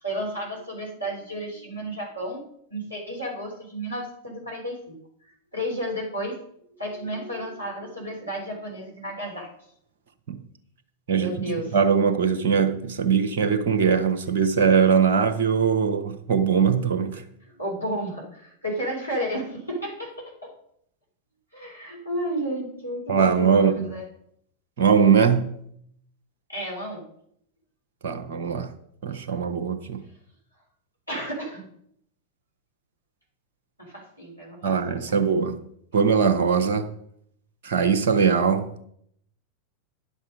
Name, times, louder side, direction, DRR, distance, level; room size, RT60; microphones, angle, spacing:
voice 1, 0.0-2.4 2.7-5.0 5.5-6.4 6.8-9.5 11.2-11.8 17.4-20.1 20.4-20.5 21.5-24.0 26.5-27.0 31.1-31.7 33.8-35.3, equal, 90° left, 3.5 m, -32 dB
voice 2, 11.1-17.2 23.1-24.0 24.8-25.6 28.0-28.7 29.0-30.0 34.6-35.6 35.9-36.9 37.6-38.8, right 6 dB, 55° right, 1.0 m, -21 dB
10.0 x 7.0 x 5.0 m
figure-of-eight pair, 90°, 0 cm